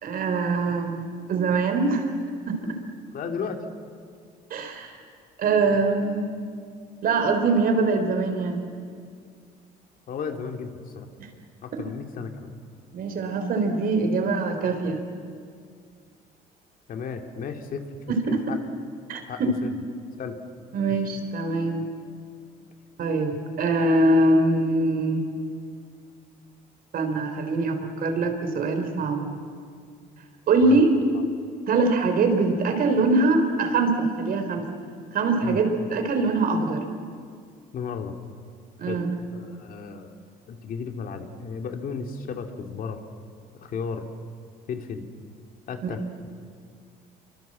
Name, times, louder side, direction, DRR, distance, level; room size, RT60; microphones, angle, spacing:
voice 1, 0.0-2.1 2.5-2.8 4.5-5.0 5.4-6.3 7.0-8.6 12.9-15.0 18.1-18.4 19.1-19.5 20.7-21.9 23.0-25.2 26.9-29.4 30.5-30.9 31.7-34.7 35.1-36.9 38.8-39.1 45.8-46.0, right 3 dB, 60° right, 6 dB, 3.9 m, -23 dB
voice 2, 3.1-3.6 10.1-11.1 11.6-12.5 16.9-17.9 18.3-18.6 19.3-19.8 20.2-20.4 30.6-31.0 35.4-35.6 37.7-38.1 38.9-39.0 39.3-40.1 40.5-43.0 43.5-44.1 44.7-45.1 45.7-46.0, left 6 dB, 55° left, 5 dB, 2.5 m, -34 dB
27.0 x 24.0 x 7.6 m, 2.2 s
cardioid pair, 110°, 17 cm